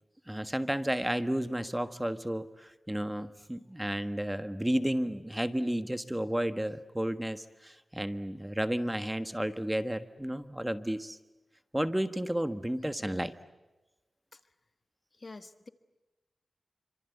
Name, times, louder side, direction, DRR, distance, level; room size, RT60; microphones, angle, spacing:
voice 1, 0.3-11.2 11.7-13.3, right 1 dB, 10° right, 11 dB, 1.4 m, -32 dB
voice 2, 15.1-15.7, left 3 dB, 40° left, 11 dB, 1.4 m, -47 dB
27.5 x 26.0 x 8.2 m, 1.1 s
wide cardioid pair, 75°, 0 cm